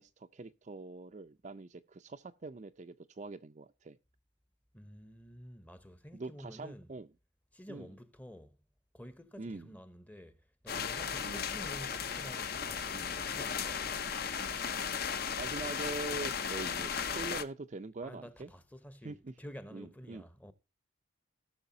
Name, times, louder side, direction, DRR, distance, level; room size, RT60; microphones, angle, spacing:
voice 1, 0.0-4.0 6.1-7.1 7.7-7.9 9.4-9.7 11.2-11.5 12.9-13.1 15.4-18.5 19.0-19.3 19.7-20.2, right 3 dB, 35° right, 0.4 m, -43 dB
voice 2, 4.7-6.9 7.5-8.6 8.9-14.2 18.0-20.5, equal, 5° left, 0.7 m, -50 dB
sound 1, 10.7-17.4, left 6 dB, 50° left, 0.7 m, -36 dB
18.0 x 6.3 x 2.7 m
head